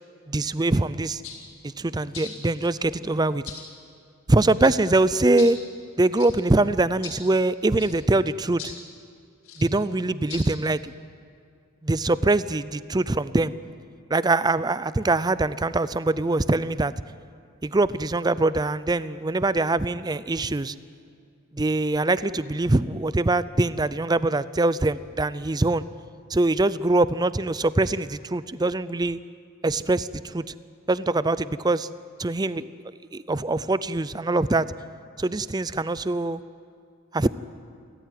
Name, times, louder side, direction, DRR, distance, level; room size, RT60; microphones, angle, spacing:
voice 1, 0.3-1.2 1.8-3.4 4.3-5.6 6.0-8.6 9.6-10.9 11.8-13.5 14.1-16.9 17.6-20.7 21.5-25.8 26.3-29.2 29.6-30.5 30.9-31.9 32.2-32.7 33.1-34.7 35.2-36.4 37.1-37.3, right 2 dB, 20° right, 16 dB, 0.5 m, -23 dB
sound 1, 1.2-1.4 2.1-2.7 3.4-3.7 4.6-4.8 5.4-5.5 6.1-6.3 7.0-7.2 7.8-7.9 8.6-8.8 9.4-9.7 10.3-10.5, left 6 dB, 85° left, 4.8 m, -39 dB
29.0 x 14.0 x 9.4 m, 2.3 s
head